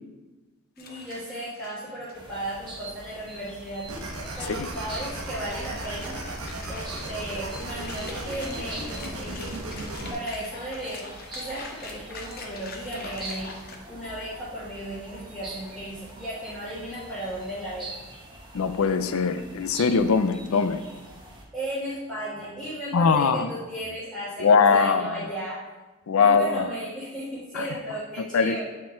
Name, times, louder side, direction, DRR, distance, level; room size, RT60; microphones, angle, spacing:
sound 1, 0.8-2.2 2.5-2.6 3.7-13.8, left 3 dB, 45° left, 0.8 m, -44 dB
voice 1, 0.8-3.9 4.4-6.2 6.7-11.0 11.3-17.9 21.5-25.6 26.2-28.6, right 1 dB, ahead, -12 dB, 1.5 m, -35 dB
sound 2, 2.1-21.4, right 2 dB, 20° right, 1.0 m, -44 dB
sound 3, 3.9-10.1, right 1 dB, 90° right, 1.0 m, -35 dB
voice 2, 18.5-20.8 22.9-23.5 24.4-25.3 26.1-26.7 27.5-27.8 28.2-28.6, left 5 dB, 80° left, 11 dB, 0.4 m, -22 dB
8.7 x 3.8 x 4.5 m, 1.2 s
head